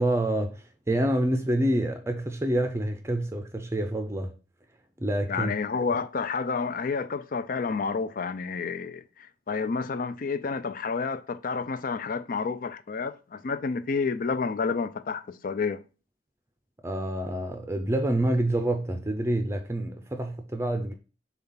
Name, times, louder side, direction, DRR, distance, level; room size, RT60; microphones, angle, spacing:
voice 1, 0.0-4.4 5.0-5.5 16.8-20.9, right 1 dB, 15° right, 0.5 m, -27 dB
voice 2, 5.3-9.0 9.5-15.8, left 4 dB, 50° left, 0.5 m, -29 dB
7.1 x 2.4 x 5.6 m
head